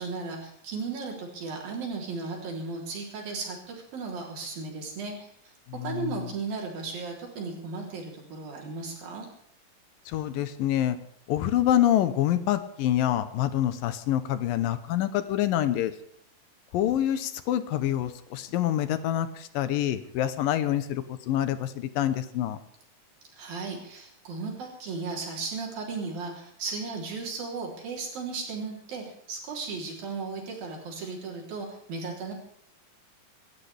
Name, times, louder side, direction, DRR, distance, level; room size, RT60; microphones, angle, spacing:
voice 1, 0.0-5.2 5.8-9.3 23.4-32.3, right 4 dB, 90° right, -2 dB, 5.4 m, -35 dB
voice 2, 5.7-6.3 10.1-11.0 11.3-15.9 16.7-22.6, left 12 dB, 80° left, 11 dB, 2.7 m, -26 dB
27.0 x 13.0 x 3.5 m, 0.68 s
omnidirectional pair, 4.0 m